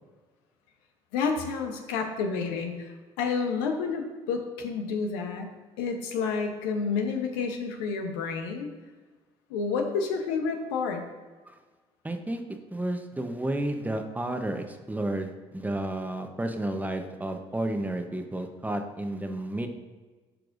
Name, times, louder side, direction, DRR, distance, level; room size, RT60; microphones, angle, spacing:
voice 1, 1.1-8.7 9.5-11.0, left 5 dB, 90° left, 4 dB, 0.9 m, -30 dB
voice 2, 12.0-12.4 12.7-19.7, right 1 dB, 15° right, 5 dB, 0.9 m, -31 dB
12.0 x 4.5 x 2.6 m, 1.3 s
supercardioid pair, 65°, 13 cm